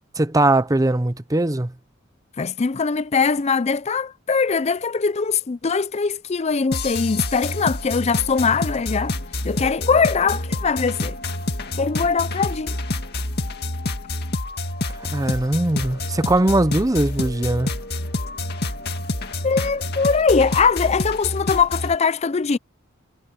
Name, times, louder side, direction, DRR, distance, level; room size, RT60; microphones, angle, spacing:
voice 1, 0.2-1.7 15.1-17.7, right 1 dB, 15° right, 0.7 m, -20 dB
voice 2, 2.4-9.1 9.4-11.2 11.8-12.8 19.4-22.6, left 5 dB, 30° left, 0.5 m, -21 dB
sound 1, 6.7-22.0, left 2 dB, 50° left, 2.0 m, -28 dB
head